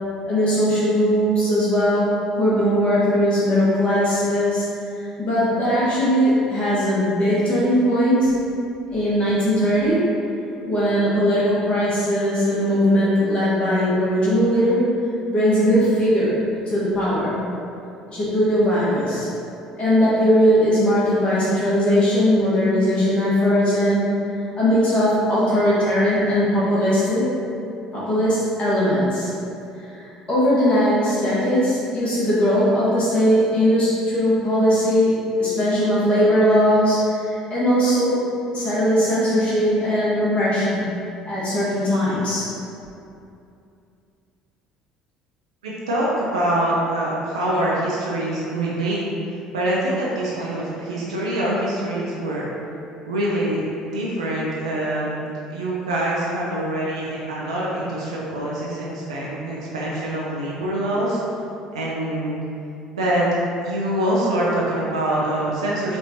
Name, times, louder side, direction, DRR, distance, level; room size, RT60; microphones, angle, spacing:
voice 1, 0.3-4.6 5.0-8.3 8.9-10.1 10.6-14.8 15.3-16.4 16.7-17.4 18.1-19.3 19.8-24.1 24.5-27.2 27.9-29.3 29.8-38.2 38.5-40.8 41.3-42.5, equal, 35° left, -9 dB, 1.3 m, -19 dB
voice 2, 45.6-49.1 49.5-52.5 53.1-53.7 53.9-55.2 55.5-61.2 61.7-62.4 62.9-63.3 63.6-66.0, right 1 dB, 80° right, -6 dB, 0.5 m, -24 dB
5.2 x 2.6 x 2.9 m, 2.6 s
figure-of-eight pair, 55°, 3 cm